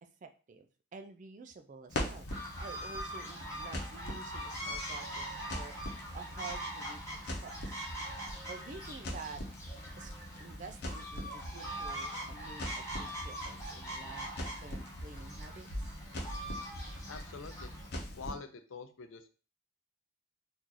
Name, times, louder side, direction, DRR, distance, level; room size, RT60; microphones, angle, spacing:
voice 1, 0.2-2.3 2.6-5.7 6.1-7.9 8.5-9.4 10.0-10.1 10.4-14.3 14.6-15.9, right 4 dB, 40° right, 7 dB, 0.4 m, -49 dB
Crackle, 1.9-18.3, left 1 dB, 55° left, 0.8 m, -42 dB
sound 1, 2.3-17.9, right 1 dB, 15° left, 1.2 m, -43 dB
voice 2, 17.1-17.7 18.1-19.3, left 4 dB, 80° left, 8 dB, 0.5 m, -45 dB
2.9 x 2.5 x 3.8 m, 0.36 s
head